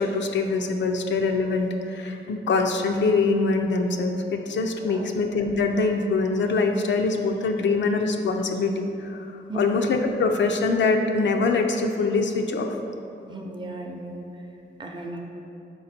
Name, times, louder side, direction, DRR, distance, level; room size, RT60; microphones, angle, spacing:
voice 1, 0.0-12.8, left 3 dB, 80° left, 4 dB, 0.5 m, -24 dB
voice 2, 13.3-14.2 14.8-15.2, right 2 dB, 25° right, 1 dB, 0.5 m, -35 dB
5.4 x 4.3 x 4.2 m, 2.7 s
wide cardioid pair, 135°, 19 cm